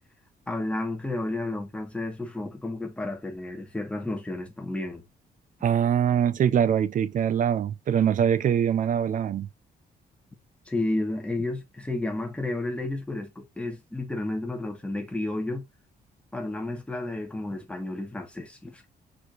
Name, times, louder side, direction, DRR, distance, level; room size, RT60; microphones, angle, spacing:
voice 1, 0.5-5.0 10.7-15.6 16.3-18.9, left 2 dB, 5° left, 1.5 m, -32 dB
voice 2, 5.6-9.5, right 8 dB, 50° right, 0.6 m, -23 dB
4.8 x 4.3 x 2.5 m
cardioid pair, 130°, 17 cm